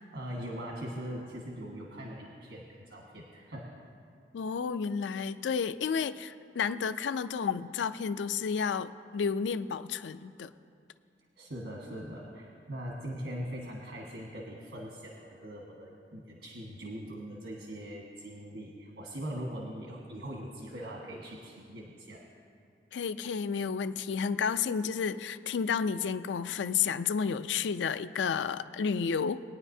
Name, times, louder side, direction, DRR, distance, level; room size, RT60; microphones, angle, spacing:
voice 1, 0.1-3.7 11.4-22.2, equal, 80° right, -2 dB, 1.4 m, -41 dB
voice 2, 4.3-10.5 22.9-29.4, left 6 dB, 80° left, 13 dB, 0.4 m, -31 dB
21.0 x 9.8 x 2.7 m, 2.4 s
head